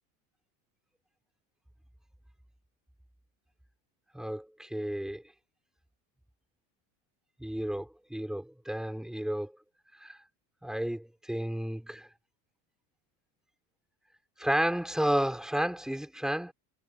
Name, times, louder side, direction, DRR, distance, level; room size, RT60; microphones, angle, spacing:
voice 1, 4.1-5.2 7.4-9.5 10.0-10.2 10.6-12.1 14.4-16.5, equal, ahead, 3.8 m, -32 dB
cardioid pair, 180°, 36 cm